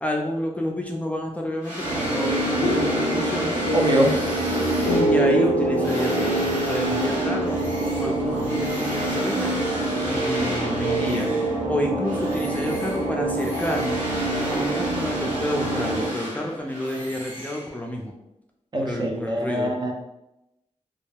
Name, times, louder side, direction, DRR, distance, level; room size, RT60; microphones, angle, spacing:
voice 1, 0.0-3.6 4.9-7.6 7.9-9.5 10.0-11.3 11.7-14.0 14.5-18.1 18.8-19.7, left 1 dB, 10° left, 0 dB, 0.4 m, -29 dB
sound 1, 1.6-11.7 12.0-18.0, equal, 90° right, 1.1 m, -33 dB
sound 2, 1.8-16.1, right 2 dB, 75° right, 0.8 m, -26 dB
sound 3, 2.6-8.6, equal, 75° left, 0.4 m, -27 dB
voice 2, 3.7-4.1 18.7-19.9, right 1 dB, 35° right, 1 dB, 0.6 m, -23 dB
2.3 x 2.1 x 3.3 m, 0.89 s
cardioid pair, 60°, 13 cm